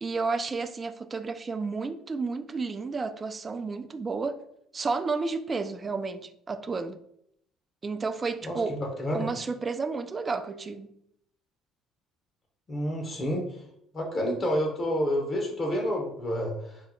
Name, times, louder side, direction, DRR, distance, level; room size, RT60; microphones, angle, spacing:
voice 1, 0.0-4.4 4.7-7.0 7.8-8.8 9.1-11.0, right 4 dB, 35° right, 0.3 m, -31 dB
voice 2, 8.4-9.3 12.7-13.5 13.9-16.8, equal, 40° left, 0.9 m, -29 dB
2.8 x 2.0 x 3.8 m
hypercardioid pair, 65°, 0 cm